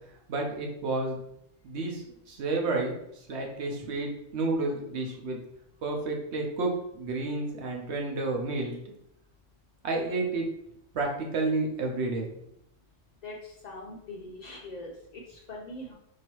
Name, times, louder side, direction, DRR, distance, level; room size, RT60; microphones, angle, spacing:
voice 1, 0.3-1.2 1.6-2.9 3.3-5.4 5.8-8.8 9.8-10.5 10.9-12.3, right 3 dB, 60° right, 1 dB, 1.0 m, -30 dB
voice 2, 13.2-15.9, left 1 dB, 60° left, -2 dB, 0.4 m, -42 dB
4.7 x 2.9 x 3.0 m, 0.79 s
omnidirectional pair, 1.3 m